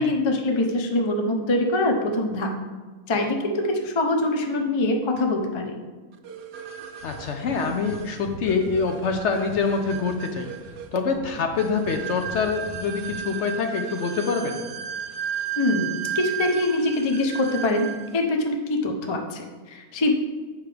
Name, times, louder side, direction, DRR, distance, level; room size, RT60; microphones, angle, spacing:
voice 1, 0.0-2.5 3.1-5.8 15.6-17.9 18.1-20.1, left 2 dB, 40° left, 3 dB, 0.4 m, -24 dB
sound 1, 6.2-18.2, right 8 dB, 70° right, 0.6 m, -35 dB
Breathing, 7.0-7.2 7.4-7.6 7.9-8.0 8.3-9.6 9.9-10.8 11.1-12.0 12.3-13.2, left 3 dB, 90° left, 1.3 m, -41 dB
voice 2, 7.0-10.5 10.9-14.6, left 4 dB, 60° left, 5 dB, 0.8 m, -25 dB
7.4 x 5.6 x 3.3 m, 1.4 s
omnidirectional pair, 1.5 m